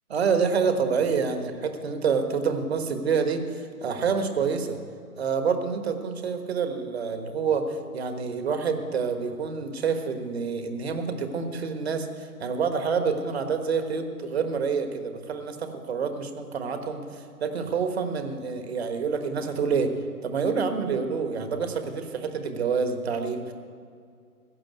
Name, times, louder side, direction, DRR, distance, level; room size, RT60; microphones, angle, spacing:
voice 1, 0.1-4.8 5.2-19.9 20.2-23.5, right 5 dB, 45° right, 7 dB, 1.3 m, -27 dB
15.0 x 7.1 x 9.3 m, 2.3 s
figure-of-eight pair, 135°, 46 cm